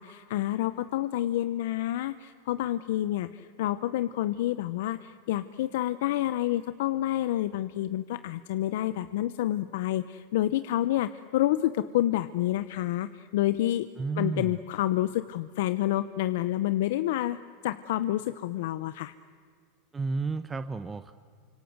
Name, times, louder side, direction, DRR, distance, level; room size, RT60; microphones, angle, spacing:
voice 1, 0.0-13.9 14.2-19.1, left 14 dB, 75° left, 13 dB, 0.8 m, -28 dB
voice 2, 14.0-14.6 19.9-21.1, right 4 dB, 15° right, 11 dB, 0.9 m, -31 dB
28.5 x 26.0 x 8.0 m, 2.1 s
supercardioid pair, 135°, 0 cm